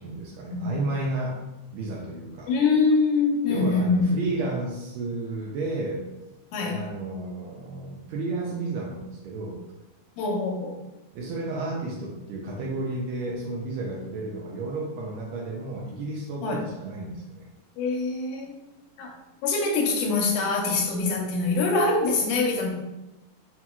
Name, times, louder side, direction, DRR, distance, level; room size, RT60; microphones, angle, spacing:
voice 1, 0.0-1.4 1.7-2.5 3.5-6.1 6.6-9.7 11.1-17.5, right 2 dB, 80° right, -2 dB, 1.6 m, -32 dB
voice 2, 2.5-4.1 6.5-6.8 10.2-10.8 16.4-16.7 17.8-18.5 19.0-19.1 19.4-22.7, left 3 dB, 85° left, 0 dB, 2.2 m, -24 dB
5.8 x 2.8 x 2.2 m, 0.99 s
omnidirectional pair, 3.5 m